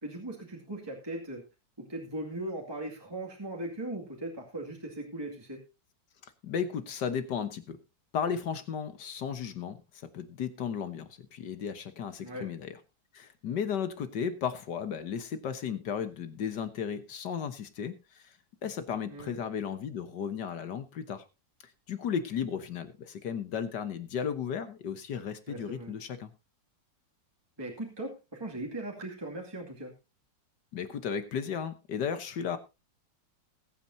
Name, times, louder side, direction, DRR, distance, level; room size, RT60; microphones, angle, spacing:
voice 1, 0.0-1.4 1.8-5.6 12.2-12.5 19.0-19.4 25.5-25.9 27.6-29.9, right 1 dB, 15° right, -1 dB, 2.2 m, -39 dB
voice 2, 6.2-7.8 8.1-9.8 10.1-12.8 13.1-18.3 18.6-21.2 21.9-26.3 30.7-32.6, left 7 dB, 65° left, 10 dB, 1.8 m, -34 dB
20.5 x 8.9 x 2.7 m, 0.27 s
omnidirectional pair, 2.0 m